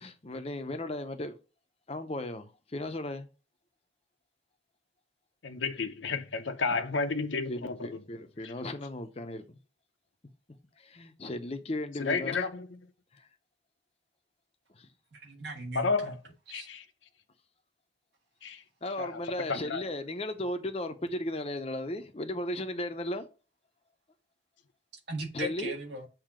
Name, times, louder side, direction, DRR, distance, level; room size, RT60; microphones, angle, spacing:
voice 1, 0.0-1.4 1.9-3.3 7.5-9.6 10.8-12.5 13.1-13.2 14.7-14.9 18.8-23.3 25.3-25.7, left 1 dB, 30° left, 0.7 m, -36 dB
voice 2, 5.4-8.0 8.4-8.5 12.0-12.7 15.7-16.1 16.5-16.8 18.4-18.6 19.0-19.2 19.5-19.8, left 4 dB, 75° left, 0.8 m, -31 dB
voice 3, 15.1-16.2 16.5-16.7 25.1-26.1, right 1 dB, 65° right, 1.7 m, -38 dB
7.4 x 2.8 x 5.0 m
head